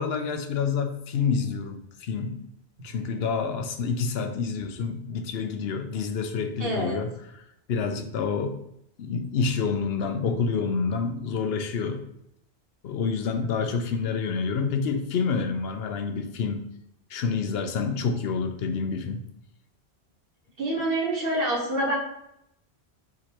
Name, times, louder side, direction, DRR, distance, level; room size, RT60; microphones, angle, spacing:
voice 1, 0.0-2.5 2.8-8.6 9.0-12.0 12.8-16.6 17.1-19.2, left 5 dB, 70° left, 6 dB, 0.8 m, -28 dB
voice 2, 6.6-7.0 20.6-22.0, right 1 dB, 60° right, -3 dB, 1.4 m, -26 dB
4.5 x 3.7 x 2.9 m, 0.77 s
omnidirectional pair, 1.1 m